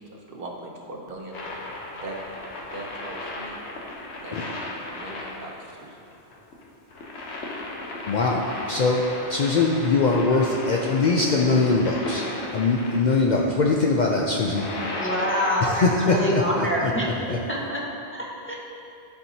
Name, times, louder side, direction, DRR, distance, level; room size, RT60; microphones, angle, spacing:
voice 1, 0.0-1.4 2.0-2.2 2.7-3.6 4.2-4.4 4.9-6.0, right 2 dB, 60° right, -1 dB, 1.0 m, -39 dB
sound 1, 1.3-13.1 14.2-16.1 17.6-17.7, left 2 dB, 85° left, 1.2 m, -35 dB
voice 2, 8.1-12.2 12.5-14.7 15.6-16.9 17.3-17.4, left 3 dB, 55° left, -1 dB, 0.5 m, -22 dB
voice 3, 15.0-17.1 17.5-17.8 18.1-18.5, equal, 15° left, -5 dB, 0.8 m, -26 dB
11.0 x 4.4 x 2.8 m, 2.6 s
omnidirectional pair, 1.1 m